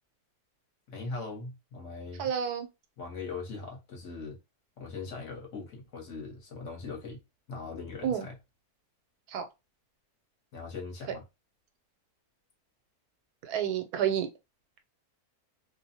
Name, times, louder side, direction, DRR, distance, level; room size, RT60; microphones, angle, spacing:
voice 1, 0.9-2.3 3.0-4.4 4.8-7.2 7.5-8.4 10.5-11.2, left 4 dB, 60° left, 1.0 m, -40 dB
voice 2, 2.2-2.7 8.0-8.3 9.3-9.4 13.4-14.3, right 9 dB, 90° right, 1.1 m, -29 dB
2.6 x 2.0 x 2.6 m
omnidirectional pair, 1.6 m